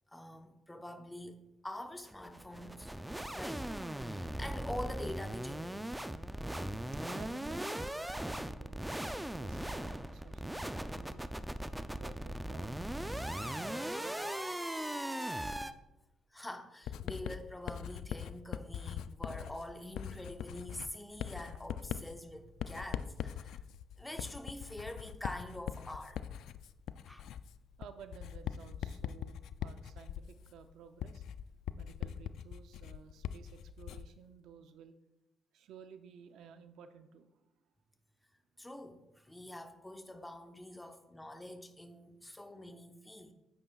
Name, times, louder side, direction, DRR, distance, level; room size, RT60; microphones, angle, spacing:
voice 1, 0.1-1.4 1.6-2.9 3.3-3.6 3.9-5.9 16.3-23.6 24.0-26.2 27.1-27.3 38.6-43.3, left 1 dB, 10° left, 5 dB, 1.0 m, -45 dB
sound 1, 2.1-15.7, right 1 dB, 5° right, 0.4 m, -39 dB
voice 2, 6.8-8.9 9.4-11.3 12.0-14.7 27.8-31.2 31.7-34.9 35.5-37.3, right 7 dB, 80° right, 9 dB, 0.6 m, -55 dB
Writing, 16.9-34.2, left 9 dB, 80° left, 0.3 m, -42 dB
9.4 x 8.8 x 2.4 m, 0.96 s
cardioid pair, 90°, 0 cm